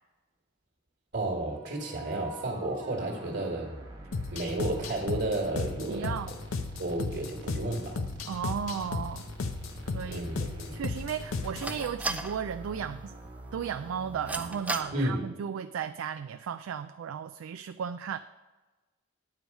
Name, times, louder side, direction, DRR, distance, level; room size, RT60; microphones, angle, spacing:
voice 1, 1.1-3.7 4.3-6.3 6.8-8.0 10.1-10.8 14.9-15.2, right 2 dB, 55° right, -1 dB, 1.5 m, -32 dB
sound 1, 1.4-15.3, right 1 dB, 25° right, 1.1 m, -47 dB
sound 2, 4.1-11.8, left 3 dB, 90° left, 0.7 m, -35 dB
voice 2, 5.9-6.3 8.3-9.2 9.9-13.1 13.5-18.2, right 7 dB, 85° right, 10 dB, 0.3 m, -35 dB
sound 3, 8.4-14.8, right 2 dB, 5° right, 0.3 m, -41 dB
9.6 x 4.7 x 6.4 m, 1.2 s
head